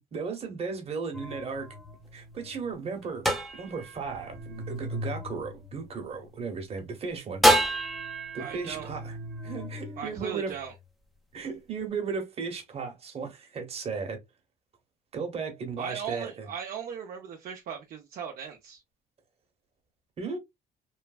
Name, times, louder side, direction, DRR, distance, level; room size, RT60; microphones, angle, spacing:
voice 1, 0.1-1.7 2.1-7.4 8.3-9.1 9.4-10.5 11.3-14.2 15.1-16.5 20.2-20.4, right 5 dB, 35° right, 1.0 m, -35 dB
sound 1, 1.1-6.4 7.4-10.8, equal, ahead, 0.5 m, -30 dB
voice 2, 8.4-8.9 10.0-10.7 15.8-18.8, right 7 dB, 60° right, 0.6 m, -38 dB
3.1 x 2.2 x 2.3 m
cardioid pair, 110°, 17 cm